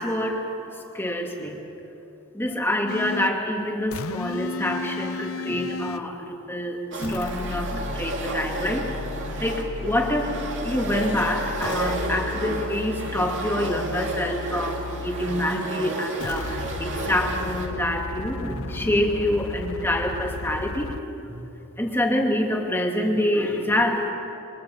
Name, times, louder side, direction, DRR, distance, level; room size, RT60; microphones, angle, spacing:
voice 1, 0.0-1.6 2.3-8.9 9.4-20.9 21.2-21.4 21.8-24.1, left 1 dB, 10° left, 1 dB, 2.3 m, -26 dB
sound 1, 2.9-3.4 3.9-6.1 7.0-15.6 16.2-21.0, left 3 dB, 70° left, 0.8 m, -34 dB
sound 2, 6.9-17.7, right 2 dB, 60° right, 2.5 m, -33 dB
27.5 x 25.0 x 5.6 m, 3.0 s
head